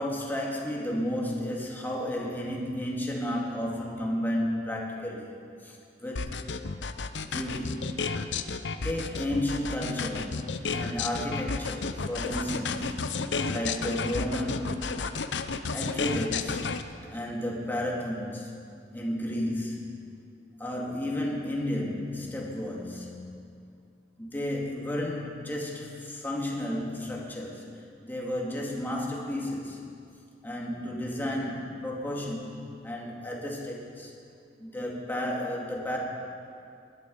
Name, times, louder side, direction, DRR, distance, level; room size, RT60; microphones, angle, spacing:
voice 1, 0.0-5.4 5.6-6.4 7.3-7.9 8.8-14.8 15.7-16.7 17.1-18.6 18.9-19.8 20.6-23.4 24.2-27.7 28.0-29.8 30.4-32.6 32.8-34.1 34.6-36.0, left 1 dB, 10° left, -2 dB, 2.2 m, -32 dB
sound 1, 6.2-16.8, left 4 dB, 75° left, 0.7 m, -31 dB
20.0 x 11.0 x 5.4 m, 2.5 s
head